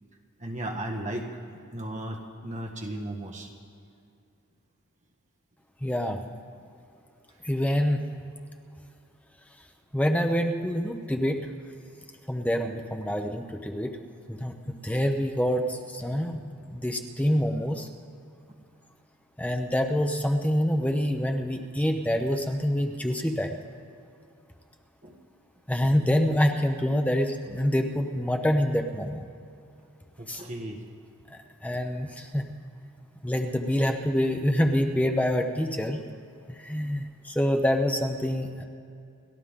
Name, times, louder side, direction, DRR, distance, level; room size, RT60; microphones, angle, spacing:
voice 1, 0.4-3.5 25.0-25.1 30.2-30.8, right 1 dB, 35° right, 1 dB, 1.7 m, -35 dB
voice 2, 5.8-6.2 7.4-8.0 9.9-11.4 12.3-13.9 14.3-17.9 19.4-23.5 25.7-29.3 30.3-30.4 31.3-32.5 33.2-36.0 36.5-38.6, equal, 5° left, 4 dB, 0.8 m, -26 dB
29.0 x 12.0 x 3.8 m, 2.5 s
head